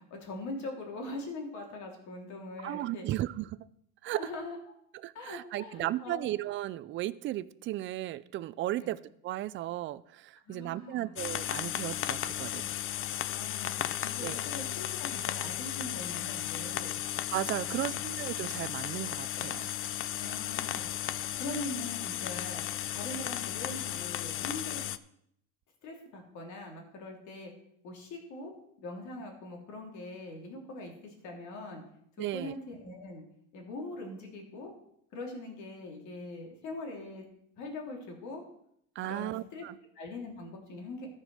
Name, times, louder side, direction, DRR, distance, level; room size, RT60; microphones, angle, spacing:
voice 1, 0.0-3.0 4.1-4.6 5.1-6.3 8.8-8.9 10.5-11.1 13.3-17.0 17.6-18.0 20.2-22.6 22.9-24.8 25.8-27.5 27.8-28.5 28.8-31.8 32.2-33.2 33.5-34.7 35.1-37.2 37.6-38.4 39.0-39.6 39.9-41.1, left 2 dB, 60° left, 1 dB, 3.2 m, -42 dB
voice 2, 2.6-3.6 4.0-4.3 5.0-12.7 14.2-14.4 17.3-19.7 32.2-32.6 39.0-39.8, right 14 dB, 35° right, 17 dB, 0.4 m, -35 dB
sound 1, 11.2-25.0, left 12 dB, 40° left, 0.5 m, -35 dB
13.5 x 5.3 x 6.2 m, 0.72 s
cardioid pair, 150°, 34 cm